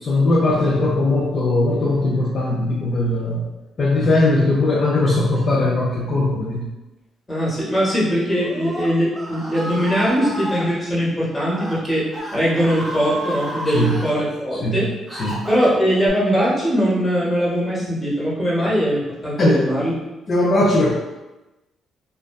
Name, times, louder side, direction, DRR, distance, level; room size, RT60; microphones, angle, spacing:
voice 1, 0.0-3.5 3.8-6.7 13.7-13.9 14.6-14.8 15.2-15.4 19.4-19.7 20.3-20.9, left 2 dB, 45° left, -6 dB, 0.5 m, -19 dB
voice 2, 7.3-14.9 15.5-19.9, equal, 20° left, -7 dB, 0.9 m, -21 dB
Screaming, 8.3-10.6 11.4-11.8 12.1-14.1 14.7-16.1, right 1 dB, 25° right, 0.5 m, -31 dB
2.4 x 2.2 x 2.2 m, 1.0 s
cardioid pair, 90°, 0 cm